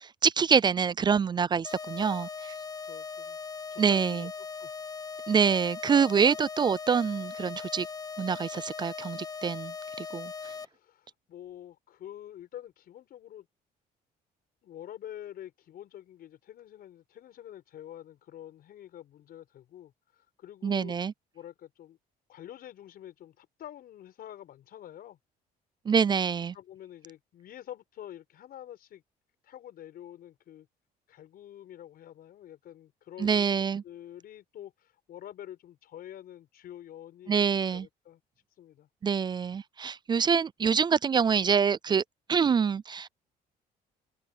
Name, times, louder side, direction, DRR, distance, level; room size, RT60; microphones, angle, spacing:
voice 1, 0.0-2.5 3.8-4.3 5.3-7.9 8.2-10.3 20.6-21.1 25.9-26.5 33.2-33.8 37.3-37.9 39.0-42.0 42.3-43.1, right 6 dB, 25° right, 0.3 m, -26 dB
sound 1, 1.6-10.6, left 5 dB, 20° left, 1.1 m, -39 dB
voice 2, 2.8-3.4 3.7-4.3 4.6-4.7 10.3-13.5 14.6-20.9 21.3-22.0 22.3-25.2 26.5-29.0 29.4-30.7 31.1-33.5 33.8-38.2 38.5-38.9, left 11 dB, 65° left, 6.2 m, -47 dB
cardioid pair, 110°, 17 cm